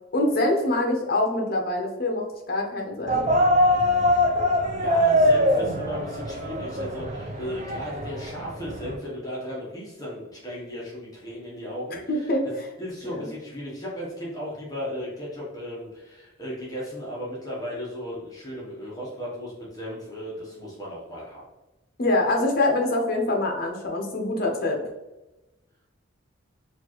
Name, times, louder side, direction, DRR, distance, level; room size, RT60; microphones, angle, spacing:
voice 1, 0.1-3.3 11.9-12.7 13.0-13.3 22.0-24.8, left 2 dB, 50° left, 1 dB, 0.7 m, -25 dB
sound 1, 3.1-9.0, left 1 dB, 35° right, 0.4 m, -23 dB
voice 2, 4.7-12.3 12.8-21.4, equal, 20° left, -6 dB, 0.9 m, -35 dB
4.3 x 2.4 x 2.9 m, 1.0 s
head